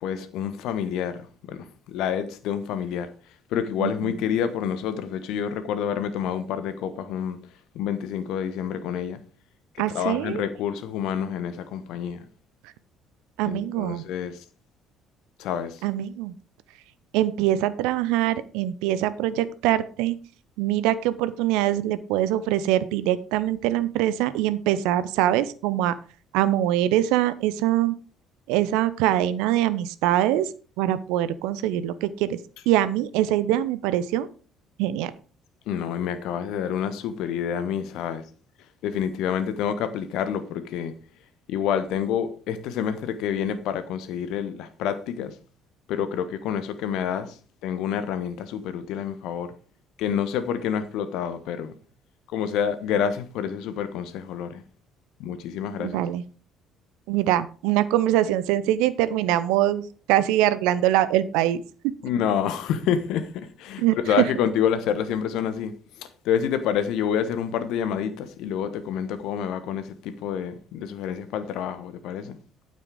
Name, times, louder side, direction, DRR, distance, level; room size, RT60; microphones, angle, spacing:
voice 1, 0.0-3.1 3.5-7.4 7.7-9.2 9.7-12.2 13.4-14.4 15.4-15.8 35.7-38.2 38.8-40.9 41.5-45.3 45.9-49.5 50.0-51.7 52.3-54.6 55.2-56.0 62.0-72.4, left 8 dB, 65° left, 1.2 m, -28 dB
voice 2, 3.8-4.1 9.8-10.4 13.4-14.0 15.8-16.3 17.1-20.2 20.6-25.9 26.3-27.9 28.5-30.5 30.8-32.4 32.7-34.3 34.8-35.1 55.8-56.2 57.1-61.6 63.8-64.3, right 13 dB, 65° right, 0.7 m, -23 dB
9.1 x 7.7 x 4.9 m
figure-of-eight pair, 50°, 0 cm